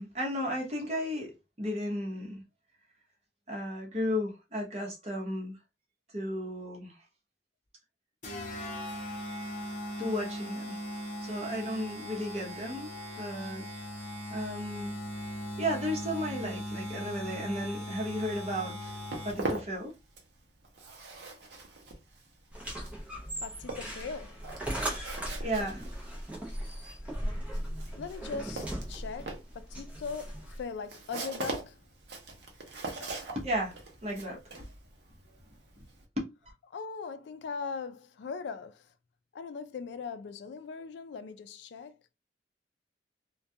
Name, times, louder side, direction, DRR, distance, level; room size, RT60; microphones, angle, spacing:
voice 1, 0.0-2.4 3.5-5.6 6.1-6.9 10.0-10.8 11.2-12.9 13.2-13.7 14.3-14.9 15.6-19.0 19.2-19.9 25.4-25.9 33.3-33.7 34.0-34.7 36.2-36.3, equal, 35° right, 0.8 m, -34 dB
sound 1, 8.2-19.6, equal, 45° left, 0.8 m, -39 dB
Walk footsteps, 18.7-20.4 20.6-36.0, right 2 dB, 70° right, 0.7 m, -42 dB
sound 2, 22.5-30.6, equal, 5° right, 0.6 m, -38 dB
voice 2, 23.4-24.5 27.9-31.8 36.7-38.9 39.3-42.0, left 5 dB, 75° left, 0.3 m, -40 dB
2.3 x 2.2 x 2.7 m
head